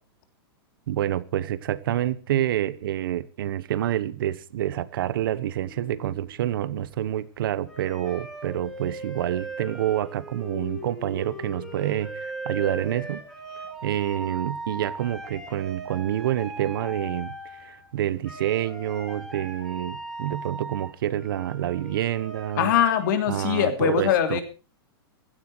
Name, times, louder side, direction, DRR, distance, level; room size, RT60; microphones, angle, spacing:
voice 1, 0.9-13.2 13.8-17.3 17.6-22.7 23.3-24.4, right 12 dB, 60° right, 1.3 m, -28 dB
sound 1, 5.2-6.4 7.6-17.9 18.2-23.2, right 2 dB, 5° left, 3.1 m, -39 dB
voice 2, 22.6-24.4, left 9 dB, 50° left, 3.1 m, -22 dB
16.0 x 14.0 x 4.8 m
supercardioid pair, 170°, 13 cm